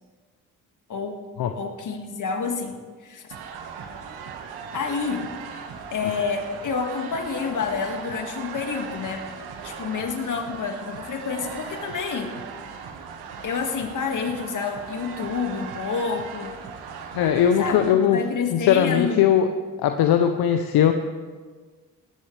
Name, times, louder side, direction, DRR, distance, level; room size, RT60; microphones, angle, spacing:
voice 1, 1.6-2.8 3.0-3.2 4.7-5.3 5.9-9.2 9.6-12.3 13.4-16.6 17.6-19.3, left 5 dB, 55° left, 4 dB, 2.1 m, -28 dB
sound 1, 3.3-17.9, right 6 dB, 85° right, 1.4 m, -38 dB
voice 2, 17.1-18.2 18.5-19.5 19.8-20.9, left 9 dB, 75° left, 6 dB, 0.9 m, -19 dB
18.0 x 14.0 x 3.5 m, 1.5 s
supercardioid pair, 65°, 37 cm